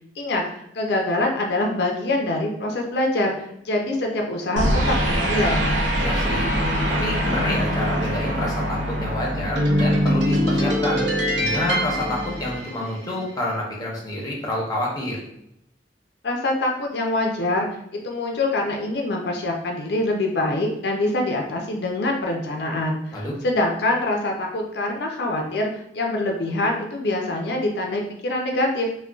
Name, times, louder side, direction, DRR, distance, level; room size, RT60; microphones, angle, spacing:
voice 1, 0.2-5.7 16.2-17.7 18.0-28.9, left 2 dB, 65° left, 1 dB, 0.4 m, -24 dB
sound 1, 4.6-13.1, equal, 80° right, 0.6 m, -23 dB
voice 2, 6.0-6.5 7.0-11.1 11.4-15.2 23.1-23.4, left 1 dB, 20° left, -2 dB, 0.7 m, -28 dB
3.7 x 2.2 x 2.3 m, 0.78 s
head